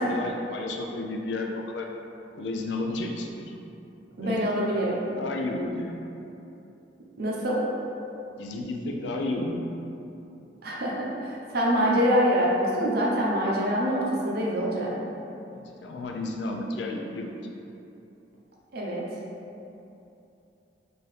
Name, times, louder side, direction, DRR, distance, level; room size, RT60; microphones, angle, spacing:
voice 1, 0.0-1.9 2.3-3.6 4.2-4.9 5.1-5.9 8.4-9.6 15.5-17.3, left 2 dB, 70° left, 2 dB, 0.4 m, -32 dB
voice 2, 4.2-5.0 7.2-7.6 10.6-14.9 18.7-19.0, equal, 60° right, -4 dB, 0.7 m, -25 dB
4.6 x 2.6 x 3.2 m, 2.8 s
head